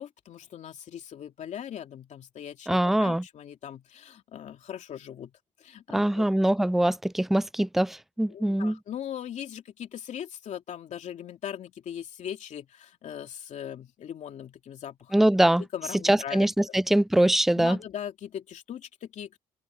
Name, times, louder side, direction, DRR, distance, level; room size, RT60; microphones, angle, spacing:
voice 1, 0.0-5.3 5.6-6.3 8.3-15.1 15.7-16.5 17.6-19.4, left 9 dB, 65° left, 2.8 m, -39 dB
voice 2, 2.7-3.2 5.9-8.8 15.1-15.6 16.0-17.8, right 1 dB, ahead, 0.4 m, -23 dB
cardioid pair, 135°, 13 cm